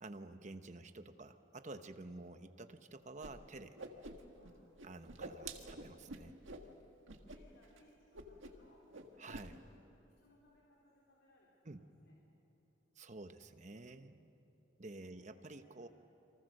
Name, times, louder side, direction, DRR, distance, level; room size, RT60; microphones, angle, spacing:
voice 1, 0.0-3.8 4.8-6.4 9.2-9.6 11.6-11.9 13.0-14.3 14.8-15.9, right 2 dB, 40° right, 9 dB, 1.0 m, -51 dB
Whoosh swoosh swish, 3.2-3.3 3.6-4.5 4.8-6.7 7.1-7.4 7.6-7.8 8.1-8.7 8.9-9.5, right 3 dB, 85° right, 1.8 m, -48 dB
voice 2, 7.3-9.7 10.0-12.1 14.9-15.9, left 1 dB, 90° left, -5 dB, 4.1 m, -69 dB
29.5 x 24.0 x 6.6 m, 3.0 s
head